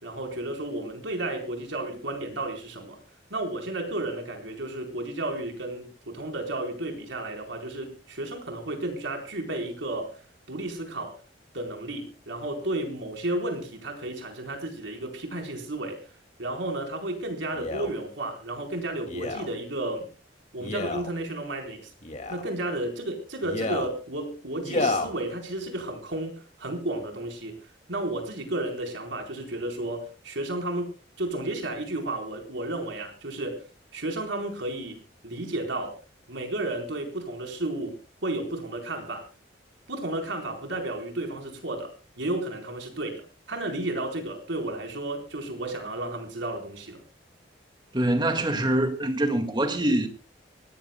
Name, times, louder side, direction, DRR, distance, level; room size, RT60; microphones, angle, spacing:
voice 1, 0.0-3.0 3.3-10.1 10.5-11.1 11.5-16.0 16.4-20.1 20.5-21.9 22.3-27.6 27.9-33.6 33.9-35.9 36.3-38.0 38.2-39.2 39.9-41.9 42.2-47.0, right 1 dB, 80° right, 4.3 m, -32 dB
Male speech man speaking, 17.5-17.9 19.1-19.5 20.6-21.1 22.0-22.5 23.4-23.9 24.6-25.1 25.8-25.9, left 2 dB, 40° left, 2.4 m, -30 dB
voice 2, 47.9-50.1, right 1 dB, 25° right, 1.9 m, -24 dB
24.5 x 18.0 x 2.3 m
head